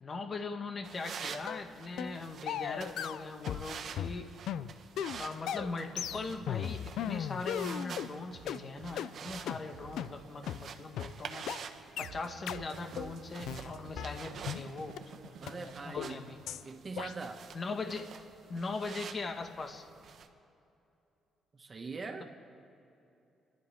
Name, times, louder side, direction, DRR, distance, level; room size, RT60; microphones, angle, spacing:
voice 1, 0.0-4.3 5.1-11.5 12.0-16.4 17.5-18.1 18.5-19.8, left 3 dB, 40° left, 5 dB, 1.7 m, -40 dB
sound 1, 0.8-20.3, right 6 dB, 60° right, 1.2 m, -48 dB
sound 2, 1.5-1.6 2.0-2.2 2.5-3.7 4.0-8.1 8.5-8.6 9.0-9.1 9.5-9.6 10.0-10.1 10.5-10.6 11.0-11.1 11.5-11.6 12.0-12.1 12.5-12.6 13.0-13.1 13.5-14.6 15.0-15.1 15.5-15.6 16.0-16.1 16.5-16.6 17.0-17.1, left 9 dB, 80° left, 0.5 m, -37 dB
sound 3, 5.1-17.0, right 10 dB, 75° right, 0.6 m, -53 dB
voice 2, 15.4-16.3 16.6-17.5 21.5-22.2, right 4 dB, 35° right, 4 dB, 1.8 m, -42 dB
30.0 x 12.0 x 3.7 m, 2.8 s
cardioid pair, 85°, 0 cm